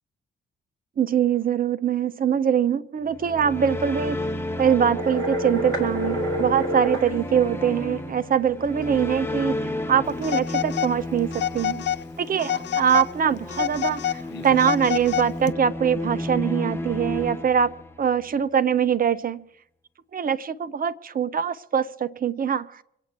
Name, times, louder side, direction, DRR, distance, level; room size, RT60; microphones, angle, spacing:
voice 1, 1.0-4.3 4.6-11.8 12.2-17.7 18.0-19.4 20.1-22.8, right 8 dB, 45° right, 13 dB, 0.9 m, -23 dB
sound 1, 3.0-18.3, left 1 dB, 10° left, 1.3 m, -32 dB
sound 2, 5.0-7.1, right 1 dB, 75° right, 3.2 m, -28 dB
Telephone, 10.2-10.9 11.3-12.0 12.4-13.1 13.5-15.5, left 10 dB, 60° left, 0.5 m, -28 dB
25.5 x 8.7 x 4.6 m, 0.76 s
hypercardioid pair, 45°, 21 cm